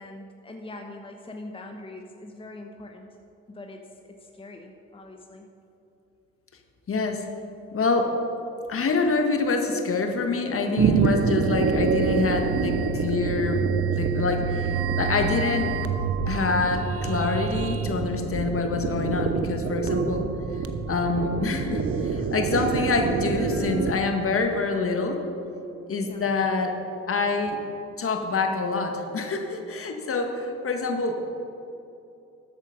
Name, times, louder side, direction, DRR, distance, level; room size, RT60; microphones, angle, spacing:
voice 1, 0.0-3.1 3.5-5.5 26.0-26.3, left 2 dB, 15° left, 3 dB, 1.1 m, -42 dB
voice 2, 6.9-7.2 7.7-8.1 8.7-15.7 16.3-20.3 20.9-25.2 25.9-26.8 27.1-27.6 28.0-31.1, left 4 dB, 45° left, 4 dB, 1.7 m, -26 dB
sound 1, 10.8-23.9, right 5 dB, 45° right, 0.9 m, -26 dB
13.0 x 8.3 x 5.2 m, 2.8 s
hypercardioid pair, 60°, 32 cm